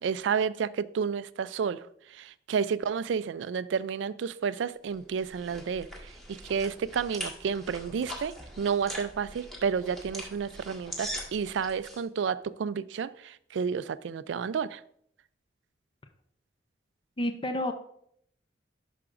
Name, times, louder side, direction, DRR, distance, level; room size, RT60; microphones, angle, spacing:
voice 1, 0.0-1.8 2.1-14.8, right 6 dB, 75° right, 16 dB, 0.3 m, -31 dB
sound 1, 4.9-12.0, equal, ahead, 1.6 m, -42 dB
voice 2, 17.2-17.7, left 1 dB, 25° left, 6 dB, 0.5 m, -29 dB
10.5 x 5.9 x 2.5 m, 0.67 s
head